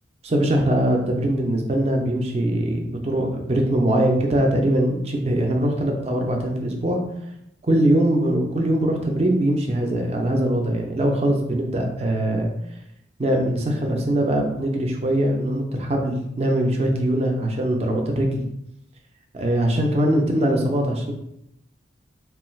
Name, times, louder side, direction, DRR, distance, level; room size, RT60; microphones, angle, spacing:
voice 1, 0.2-7.0 7.6-12.5 13.2-18.4 19.3-21.1, right 1 dB, 35° right, 2 dB, 0.4 m, -22 dB
3.1 x 2.3 x 3.1 m, 0.79 s
head